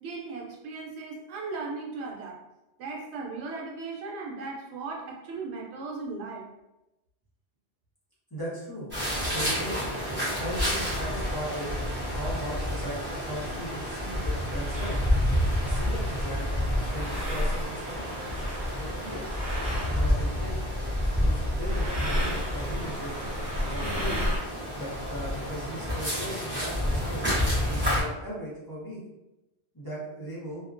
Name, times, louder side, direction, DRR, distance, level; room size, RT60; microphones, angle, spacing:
voice 1, 0.0-2.4 2.8-6.5, right 3 dB, 80° right, -1 dB, 0.9 m, -37 dB
voice 2, 8.3-8.9 9.3-11.8 12.1-15.1 15.6-16.5 16.9-18.3 18.8-19.3 19.8-20.6 21.1-23.1 23.7-24.3 24.7-27.3 27.7-29.0 29.7-30.6, right 1 dB, 25° left, -9 dB, 0.7 m, -38 dB
sound 1, 8.9-28.0, equal, 10° right, 0.7 m, -29 dB
sound 2, 14.7-20.5 21.6-24.4, equal, 55° right, 1.0 m, -34 dB
2.4 x 2.1 x 2.4 m, 0.97 s
omnidirectional pair, 1.1 m